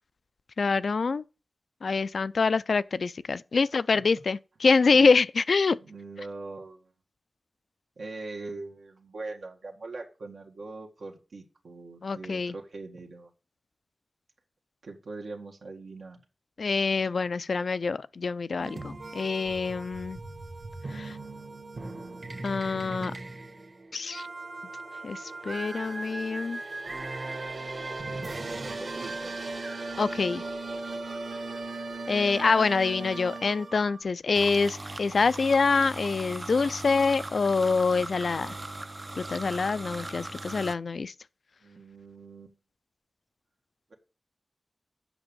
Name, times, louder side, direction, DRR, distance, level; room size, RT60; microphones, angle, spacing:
voice 1, 0.6-1.2 1.8-5.8 12.0-12.5 16.6-20.2 20.9-21.2 22.4-23.1 23.9-24.3 25.0-26.6 30.0-30.4 32.1-38.6 39.2-41.1, left 4 dB, 70° left, 0.4 m, -25 dB
voice 2, 5.8-6.9 8.0-13.3 14.8-16.2 28.5-29.3 41.6-42.5 43.9-44.0, right 3 dB, 80° right, 1.7 m, -42 dB
sound 1, 18.6-34.0, right 2 dB, 55° right, 1.8 m, -38 dB
sound 2, 34.3-40.7, right 2 dB, 30° right, 0.5 m, -39 dB
8.0 x 6.0 x 7.0 m
wide cardioid pair, 90°, 0 cm